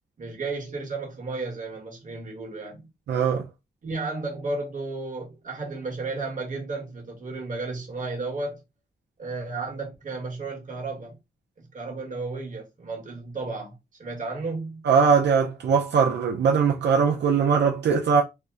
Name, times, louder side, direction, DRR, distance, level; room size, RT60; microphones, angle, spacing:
voice 1, 0.2-2.9 3.8-8.6 9.2-11.2 11.7-14.9, right 3 dB, 45° right, 1.2 m, -33 dB
voice 2, 3.1-3.4 14.8-18.2, right 6 dB, 80° right, 0.5 m, -21 dB
2.8 x 2.1 x 3.4 m
wide cardioid pair, 125°, 18 cm